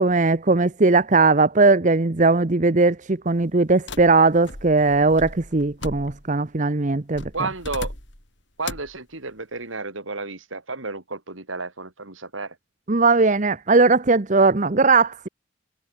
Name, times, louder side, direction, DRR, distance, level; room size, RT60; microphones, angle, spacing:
voice 1, 0.0-7.2 12.9-15.3, right 3 dB, 40° right, 0.8 m, -18 dB
sound 1, 3.9-6.5 7.1-8.3 8.6-9.0, left 2 dB, 65° left, 6.1 m, -37 dB
voice 2, 7.3-7.9 8.6-12.5, right 3 dB, 80° right, 3.6 m, -32 dB
head